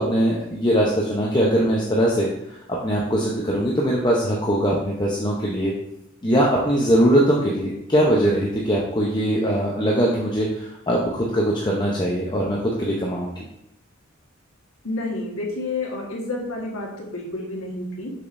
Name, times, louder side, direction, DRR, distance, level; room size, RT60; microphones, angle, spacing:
voice 1, 0.0-2.3 2.7-5.7 6.2-13.3, equal, 20° left, -4 dB, 0.7 m, -21 dB
voice 2, 14.8-18.1, left 2 dB, 80° left, -2 dB, 1.5 m, -29 dB
6.4 x 6.1 x 2.6 m, 0.82 s
head